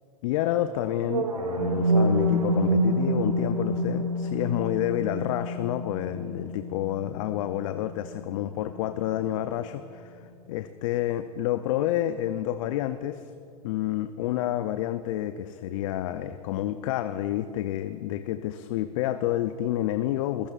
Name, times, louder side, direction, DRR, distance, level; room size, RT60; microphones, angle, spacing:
voice 1, 0.2-13.3 13.6-20.5, left 12 dB, 60° left, 10 dB, 0.6 m, -29 dB
sound 1, 1.0-9.0, equal, 90° right, 1.3 m, -27 dB
25.0 x 16.0 x 2.5 m, 2.5 s
hypercardioid pair, 85°, 19 cm